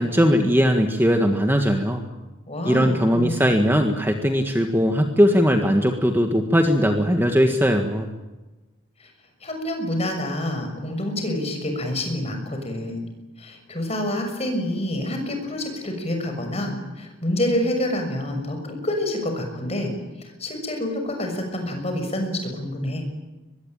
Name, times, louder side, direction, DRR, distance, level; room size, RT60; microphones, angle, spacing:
voice 1, 0.0-2.0 2.6-8.1, equal, 10° right, 4 dB, 1.7 m, -19 dB
voice 2, 2.5-3.5 9.0-9.1 9.4-13.1 13.4-19.9 20.2-23.0, left 1 dB, 30° left, 4 dB, 6.5 m, -27 dB
24.0 x 21.5 x 9.1 m, 1.1 s
head